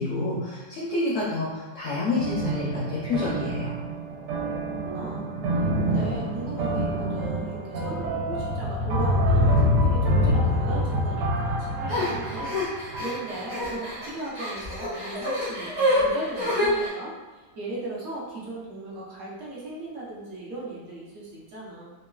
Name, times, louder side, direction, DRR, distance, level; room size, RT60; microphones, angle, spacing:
voice 1, 0.0-3.8, left 3 dB, 70° left, -6 dB, 0.7 m, -28 dB
sound 1, 2.2-13.6, equal, 85° right, 1.2 m, -26 dB
voice 2, 4.8-21.9, right 1 dB, 65° right, -7 dB, 0.6 m, -37 dB
sound 2, 11.9-16.9, equal, 25° right, 0.6 m, -27 dB
3.0 x 2.2 x 2.3 m, 1.3 s
omnidirectional pair, 1.9 m